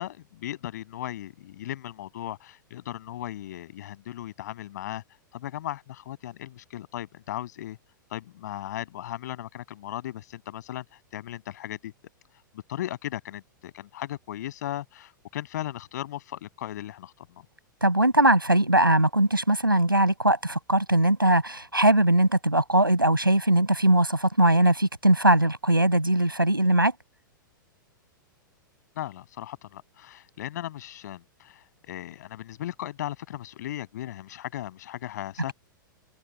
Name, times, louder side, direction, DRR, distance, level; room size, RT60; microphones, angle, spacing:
voice 1, 0.0-5.0 5.3-7.8 8.1-10.8 11.1-11.9 12.7-17.3 29.0-35.5, left 13 dB, 55° left, 7.5 m, -37 dB
voice 2, 17.8-26.9, right 1 dB, 85° right, 6.6 m, -20 dB
open air
figure-of-eight pair, 100°, 11 cm